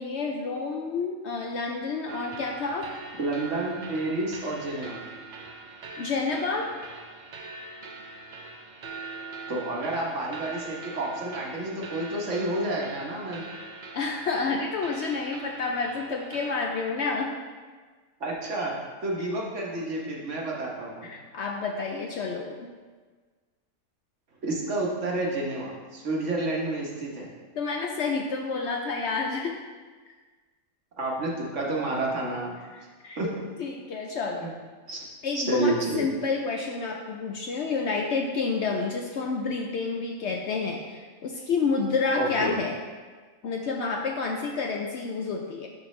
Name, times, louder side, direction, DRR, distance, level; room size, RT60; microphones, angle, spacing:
voice 1, 0.0-2.9 6.0-6.7 13.9-17.3 21.0-22.7 27.6-29.6 32.7-33.3 33.6-34.5 35.2-42.7 43.4-45.7, left 4 dB, 65° left, 1 dB, 0.7 m, -29 dB
sound 1, 2.1-16.6, right 3 dB, 80° right, 0.4 m, -42 dB
voice 2, 3.2-5.0 9.5-13.4 18.2-18.7 19.0-21.1 24.4-27.3 31.0-32.5 33.2-33.3 34.4-34.5 34.9-35.0 35.3-36.1 42.1-42.6, right 2 dB, 55° right, -3 dB, 1.5 m, -30 dB
10.5 x 4.3 x 3.2 m, 1.4 s
omnidirectional pair, 1.5 m